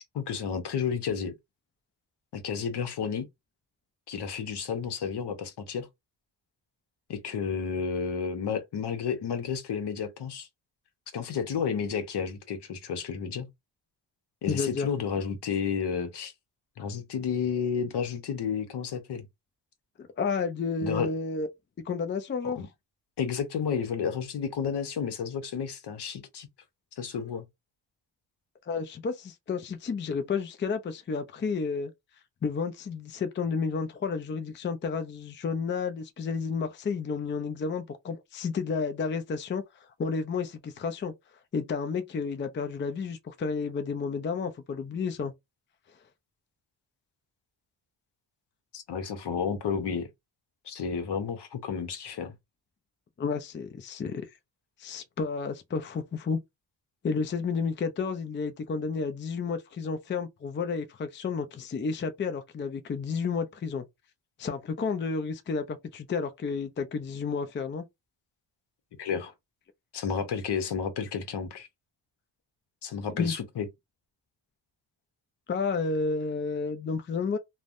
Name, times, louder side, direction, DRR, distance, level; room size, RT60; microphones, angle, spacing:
voice 1, 0.1-1.3 2.3-3.3 4.1-5.9 7.1-10.5 11.1-13.5 14.4-16.3 16.8-19.3 20.8-21.1 22.4-22.7 23.2-26.5 26.9-27.5 48.7-50.1 50.6-52.4 69.0-69.3 69.9-71.7 72.8-73.7, left 6 dB, 65° left, 0.9 m, -31 dB
voice 2, 14.5-14.9 20.0-21.5 21.9-22.6 28.7-31.9 32.4-41.1 41.5-45.3 53.2-54.3 54.8-56.4 57.0-63.8 64.4-67.9 73.1-73.3 75.5-77.4, left 5 dB, 25° left, 0.4 m, -31 dB
3.2 x 2.1 x 2.5 m
cardioid pair, 85°, 45 cm